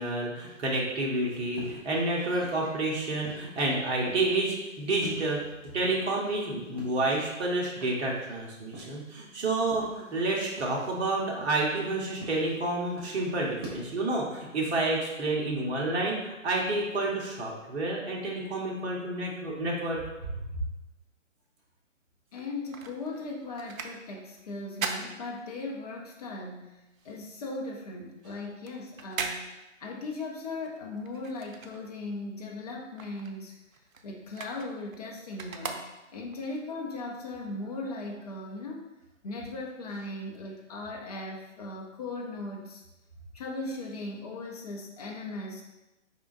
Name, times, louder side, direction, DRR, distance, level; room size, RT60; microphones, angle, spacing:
voice 1, 0.0-5.4 5.7-20.0, right 2 dB, 55° right, -3 dB, 1.2 m, -29 dB
sound 1, 1.1-2.8 3.2-7.4 7.7-9.3 9.6-13.9, right 2 dB, 20° right, 0.7 m, -47 dB
voice 2, 22.3-26.7 27.0-29.5 29.8-33.5 34.0-35.8 36.1-38.9 39.2-42.8 43.3-45.6, left 2 dB, 30° left, -1 dB, 0.6 m, -38 dB
sound 2, 22.3-26.0 26.3-32.3 32.6-36.4 36.9-37.0, right 4 dB, 90° right, 0.7 m, -40 dB
5.0 x 3.6 x 2.5 m, 0.99 s
hypercardioid pair, 150°, 39 cm